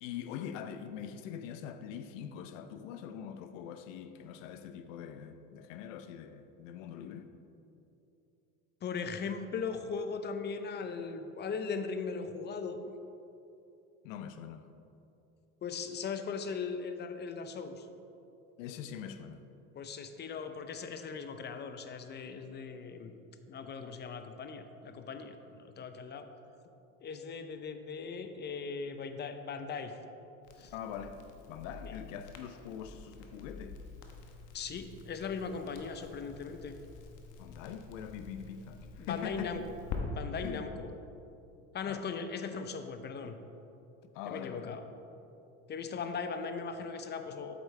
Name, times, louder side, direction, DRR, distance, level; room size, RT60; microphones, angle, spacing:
voice 1, 0.0-7.3 14.0-14.7 18.6-19.4 30.6-33.8 37.4-39.5 40.4-40.7 41.8-42.1 44.1-44.8, left 8 dB, 80° left, 0.7 m, -43 dB
voice 2, 8.8-12.8 15.6-17.9 19.7-23.2 23.5-26.3 27.0-29.9 30.6-30.7 31.8-32.0 34.5-36.7 39.0-39.6 40.0-40.9 41.7-43.4 44.3-44.8 45.7-47.5, left 5 dB, 30° left, 0.6 m, -39 dB
Crackle, 30.4-40.0, left 6 dB, 50° left, 1.1 m, -48 dB
8.1 x 8.0 x 3.2 m
supercardioid pair, 100°, 38 cm